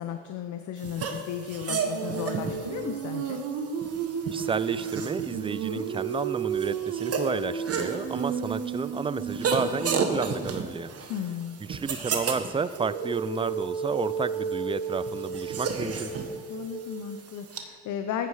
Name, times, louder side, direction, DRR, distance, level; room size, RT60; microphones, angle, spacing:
voice 1, 0.0-3.4 11.1-11.6 16.5-18.3, left 9 dB, 75° left, 7 dB, 0.7 m, -34 dB
sound 1, 0.8-17.6, right 5 dB, 50° right, 1.3 m, -34 dB
Female singing, 1.7-10.6 12.8-17.0, right 6 dB, 85° right, 1.3 m, -33 dB
voice 2, 4.3-10.9 11.7-16.1, right 5 dB, 20° right, 16 dB, 0.4 m, -31 dB
14.5 x 9.3 x 4.9 m, 2.1 s
cardioid pair, 90°, 30 cm